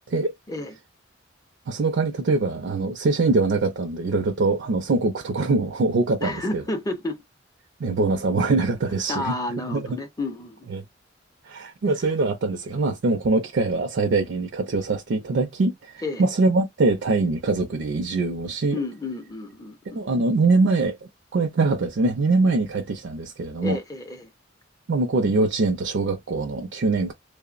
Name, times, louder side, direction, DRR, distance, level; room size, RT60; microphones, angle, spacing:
voice 1, 1.7-6.6 7.8-9.3 9.7-9.8 10.7-10.8 11.4-18.8 19.9-23.8 24.9-27.1, right 3 dB, 65° right, 0.4 m, -23 dB
voice 2, 6.2-7.2 9.1-10.7 16.0-16.2 18.7-20.0 23.6-24.3, left 2 dB, 20° left, 0.4 m, -31 dB
3.0 x 2.0 x 2.4 m
head